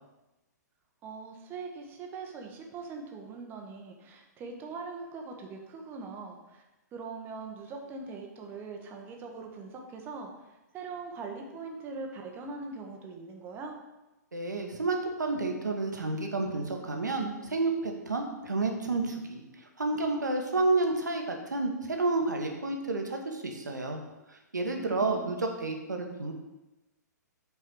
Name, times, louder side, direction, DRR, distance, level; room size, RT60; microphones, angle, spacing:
voice 1, 1.0-6.6 6.9-10.3 10.7-13.7 24.8-25.4, right 4 dB, 20° right, 2 dB, 1.1 m, -41 dB
voice 2, 14.3-24.0 24.3-26.3, right 3 dB, 75° right, 3 dB, 1.4 m, -30 dB
5.8 x 4.8 x 6.3 m, 1.0 s
figure-of-eight pair, 115°, 10 cm